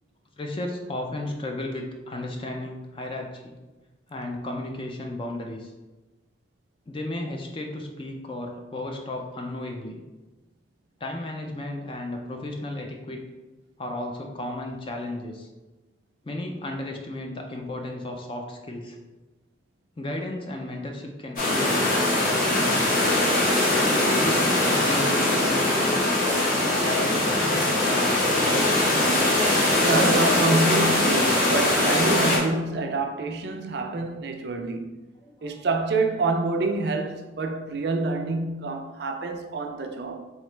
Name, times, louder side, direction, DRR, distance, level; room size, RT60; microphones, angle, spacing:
voice 1, 0.4-3.5 4.1-5.7 6.9-10.0 11.0-13.2 13.8-15.5 16.2-19.0 20.0-23.1 24.1-25.9 26.6-28.9 35.2-35.6, left 1 dB, 30° left, 0.4 m, -34 dB
sound 1, 21.4-32.4, left 1 dB, 45° left, 1.0 m, -21 dB
voice 2, 29.8-34.9 35.4-40.2, right 3 dB, 55° right, 0.4 m, -27 dB
3.7 x 3.0 x 3.2 m
head